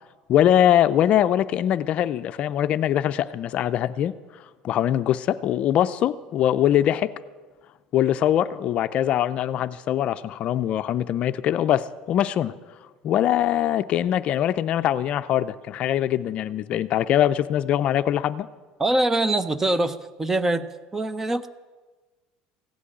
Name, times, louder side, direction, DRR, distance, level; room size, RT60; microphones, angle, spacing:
voice 1, 0.3-4.1 4.6-7.1 7.9-12.5 13.0-18.5, left 11 dB, 50° left, 12 dB, 0.4 m, -22 dB
voice 2, 18.8-20.7 20.9-21.5, right 1 dB, 15° right, 14 dB, 0.6 m, -23 dB
16.0 x 6.2 x 9.7 m, 1.3 s
cardioid pair, 125°, 3 cm